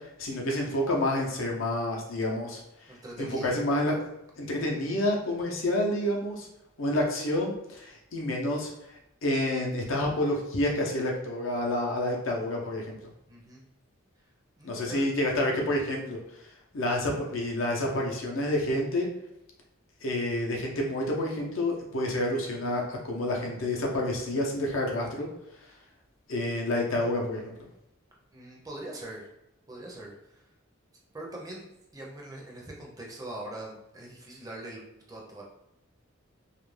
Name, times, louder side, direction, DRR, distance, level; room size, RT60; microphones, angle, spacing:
voice 1, 0.2-2.6 3.2-4.0 4.4-6.5 6.8-8.7 9.2-13.0 14.6-16.2 16.7-19.1 20.0-25.3 26.3-27.5, left 1 dB, 70° left, 0 dB, 0.6 m, -28 dB
voice 2, 2.9-3.5 13.3-13.6 14.6-15.0 28.3-29.3 29.7-30.1 31.1-35.4, right 1 dB, 20° right, -2 dB, 0.5 m, -42 dB
2.4 x 2.1 x 3.1 m, 0.86 s
head